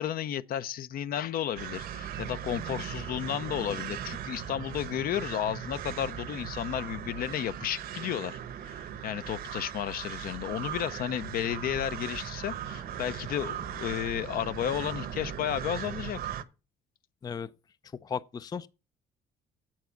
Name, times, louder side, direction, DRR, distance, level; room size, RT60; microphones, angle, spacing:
voice 1, 0.0-16.2, left 10 dB, 60° left, 0.7 m, -33 dB
sound 1, 1.6-16.4, right 9 dB, 60° right, 1.1 m, -38 dB
voice 2, 18.0-18.7, left 6 dB, 25° left, 0.4 m, -35 dB
8.2 x 7.5 x 5.8 m
cardioid pair, 110°, 17 cm